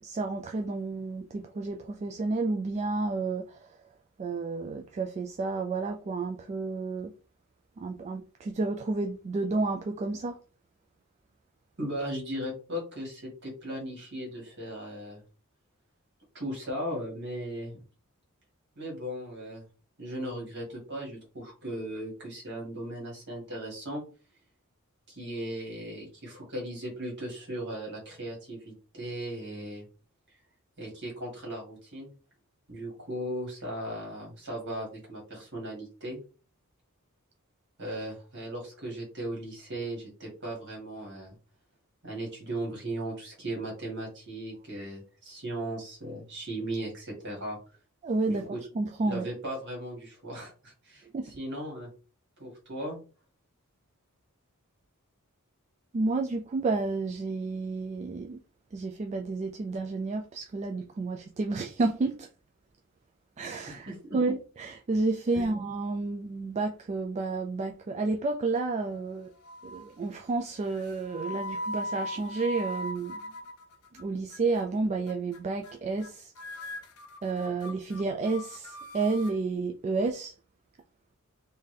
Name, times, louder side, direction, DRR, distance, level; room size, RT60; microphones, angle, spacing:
voice 1, 0.0-3.8 4.2-7.1 7.8-10.4 48.0-49.3 51.1-51.3 55.9-58.4 58.7-62.3 63.4-69.3 69.6-73.2 73.9-76.7 77.2-80.3, right 3 dB, 30° right, 0.3 m, -31 dB
voice 2, 11.8-15.2 16.3-17.8 18.8-19.6 20.0-24.0 25.1-29.8 30.8-32.1 32.7-36.2 37.8-41.3 42.0-47.6 48.3-48.6 49.0-51.1 51.4-51.9 52.4-53.0 63.9-64.2 65.3-65.5, right 1 dB, 55° right, 2.0 m, -37 dB
sound 1, 68.5-69.1 69.4-69.9 70.7-74.0 74.3-74.7 75.1-75.4 75.6-75.7 76.0-76.1 76.4-79.4, left 1 dB, 90° left, 0.5 m, -40 dB
3.6 x 2.7 x 3.3 m
head